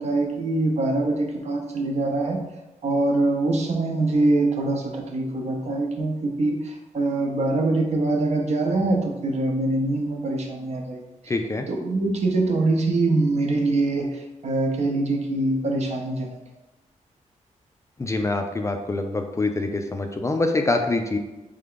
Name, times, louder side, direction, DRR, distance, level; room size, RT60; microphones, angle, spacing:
voice 1, 0.0-2.4 2.8-11.0 11.7-16.4, right 2 dB, 55° right, 1 dB, 0.7 m, -24 dB
voice 2, 11.3-11.7 18.0-21.2, left 2 dB, 20° left, 5 dB, 0.3 m, -25 dB
3.5 x 3.3 x 3.7 m, 1.0 s
wide cardioid pair, 130°, 13 cm